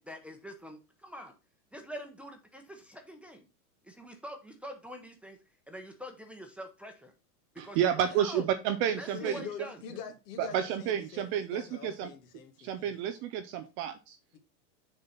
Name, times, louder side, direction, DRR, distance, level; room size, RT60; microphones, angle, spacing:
voice 1, 0.0-1.3 1.7-3.5 3.8-5.4 5.7-7.1 7.5-8.5 9.0-9.8, equal, 5° right, 0.8 m, -45 dB
voice 2, 7.6-9.4 10.4-12.1 12.6-14.2, right 9 dB, 30° right, 0.4 m, -30 dB
voice 3, 9.1-13.0, left 7 dB, 75° left, 2.0 m, -44 dB
6.8 x 4.0 x 5.7 m
supercardioid pair, 135°, 48 cm